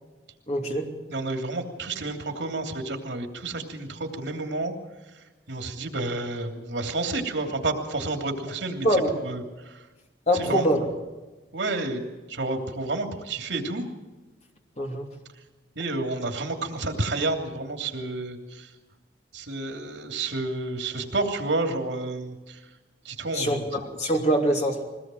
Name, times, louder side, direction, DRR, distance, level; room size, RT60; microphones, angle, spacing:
voice 1, 0.5-0.9 8.8-9.2 10.3-10.9 14.8-15.1 23.3-24.8, equal, 40° left, 2 dB, 2.9 m, -24 dB
voice 2, 1.1-4.7 5.1-8.9 9.2-9.8 10.3-10.7 11.5-12.0 12.3-13.9 15.8-18.7 19.3-22.6 23.0-23.7, right 2 dB, 80° right, 4 dB, 3.0 m, -30 dB
22.0 x 18.5 x 7.8 m, 1.2 s
head